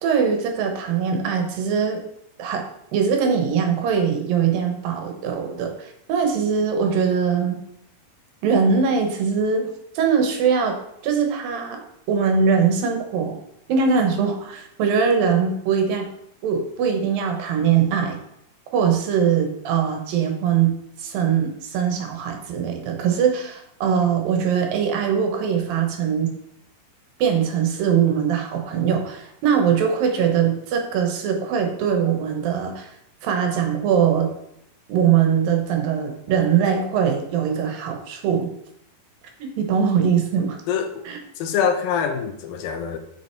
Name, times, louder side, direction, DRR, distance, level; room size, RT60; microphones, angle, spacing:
voice 1, 0.0-2.0 2.4-2.6 2.9-7.6 8.4-10.8 11.0-11.8 12.1-13.3 13.7-16.1 16.4-18.2 18.7-26.3 27.2-32.9 33.2-34.3 34.9-38.5 39.4-40.6 41.1-41.2, right 7 dB, 75° right, 4 dB, 2.8 m, -21 dB
voice 2, 40.7-41.0 41.4-43.0, left 7 dB, 80° left, 7 dB, 2.4 m, -24 dB
6.8 x 6.2 x 4.5 m, 0.77 s
omnidirectional pair, 4.1 m